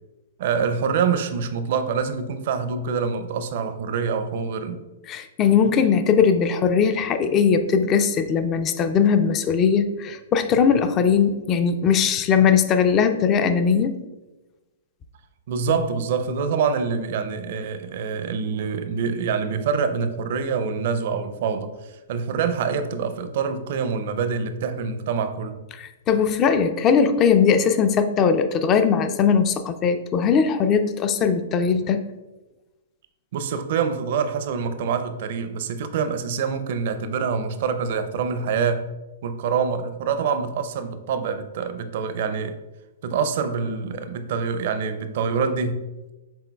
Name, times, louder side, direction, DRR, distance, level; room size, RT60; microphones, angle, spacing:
voice 1, 0.4-4.8 15.5-25.6 33.3-38.9 39.2-42.5 43.0-45.8, right 6 dB, 60° right, 10 dB, 0.5 m, -25 dB
voice 2, 5.1-14.0 25.8-32.0, left 6 dB, 30° left, 9 dB, 0.4 m, -20 dB
6.1 x 3.8 x 2.2 m, 1.1 s
hypercardioid pair, 125°, 0 cm